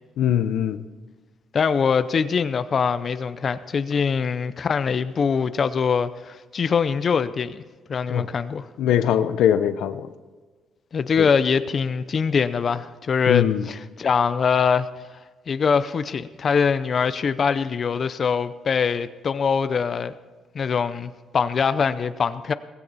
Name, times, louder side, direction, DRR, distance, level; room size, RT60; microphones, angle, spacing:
voice 1, 0.2-0.8 8.1-8.3 8.8-10.0 11.2-11.3 13.3-13.7, left 10 dB, 85° left, 0.7 m, -21 dB
voice 2, 1.5-7.6 7.9-8.7 10.9-14.9 15.5-20.1 20.5-22.5, left 6 dB, 45° left, 0.6 m, -23 dB
16.5 x 16.0 x 4.1 m
cardioid pair, 90°, 0 cm